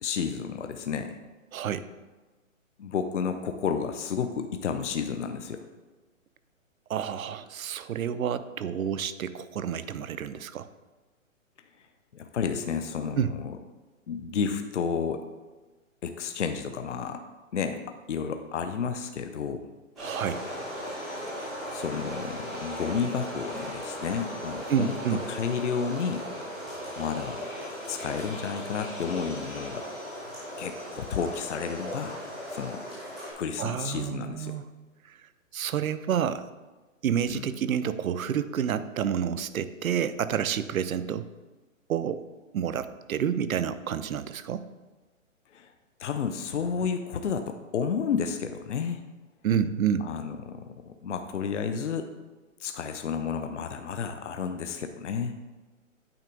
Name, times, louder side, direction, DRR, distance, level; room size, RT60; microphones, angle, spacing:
voice 1, 0.0-1.2 2.8-5.7 12.1-13.6 14.1-15.2 16.0-17.2 17.5-17.8 18.1-19.7 21.7-26.3 27.0-27.4 27.9-29.8 30.6-32.2 32.5-32.8 33.4-34.6 37.3-37.5 45.5-45.7 46.0-49.0 50.0-52.1 52.6-55.3, left 6 dB, 60° left, 7 dB, 0.6 m, -31 dB
voice 2, 1.5-1.9 6.9-10.7 13.2-13.3 20.0-20.4 24.7-25.2 33.6-34.6 35.1-35.2 35.5-36.5 37.0-41.3 41.9-42.2 42.5-44.6 49.4-50.1, right 8 dB, 85° right, 13 dB, 0.6 m, -29 dB
sound 1, 20.0-33.3, equal, ahead, 0.5 m, -37 dB
8.8 x 3.3 x 5.2 m, 1.2 s
hypercardioid pair, 180°, 40 cm